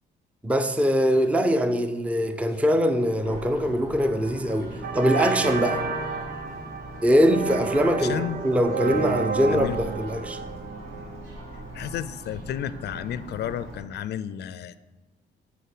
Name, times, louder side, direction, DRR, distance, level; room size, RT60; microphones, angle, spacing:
voice 1, 0.4-5.8 7.0-10.4, equal, 5° right, 0.5 m, -22 dB
Church bell, 3.2-13.8, right 1 dB, 85° right, 2.7 m, -40 dB
sound 1, 4.1-4.3 4.8-11.6, right 5 dB, 50° right, 0.8 m, -31 dB
voice 2, 8.0-8.4 8.9-9.0 9.5-9.8 10.3-10.4 11.7-14.8, left 10 dB, 60° left, 0.4 m, -32 dB
8.3 x 4.0 x 6.0 m
cardioid pair, 90°, 20 cm